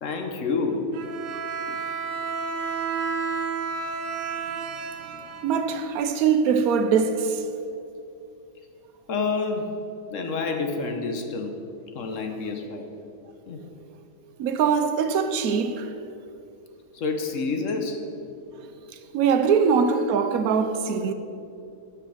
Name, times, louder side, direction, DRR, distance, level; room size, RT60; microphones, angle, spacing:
voice 1, 0.0-0.9 1.7-1.8 9.1-9.8 10.1-11.6 11.9-12.9 13.5-13.6 16.9-18.0 19.5-19.7, left 4 dB, 65° left, 1.1 m, -28 dB
Bowed string instrument, 0.9-6.0, right 5 dB, 65° right, 1.0 m, -31 dB
voice 2, 5.4-7.4 14.4-15.9 19.1-21.1, right 6 dB, 90° right, 1.1 m, -22 dB
10.0 x 6.0 x 6.3 m
omnidirectional pair, 1.5 m